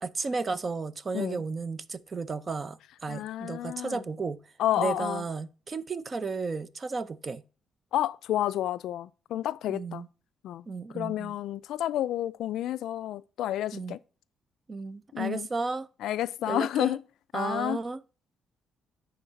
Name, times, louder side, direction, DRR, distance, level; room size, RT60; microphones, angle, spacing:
voice 1, 0.0-4.4 4.8-7.4 9.7-10.1 10.7-11.3 13.7-14.0 14.7-15.9 16.5-16.9 17.3-18.0, right 4 dB, 35° right, 0.5 m, -33 dB
voice 2, 3.1-4.0 4.6-5.2 7.9-10.0 10.4-10.6 10.9-14.0 15.1-15.5 16.0-17.0 17.3-17.8, left 12 dB, 80° left, 0.3 m, -30 dB
10.0 x 3.9 x 4.0 m
cardioid pair, 90°, 0 cm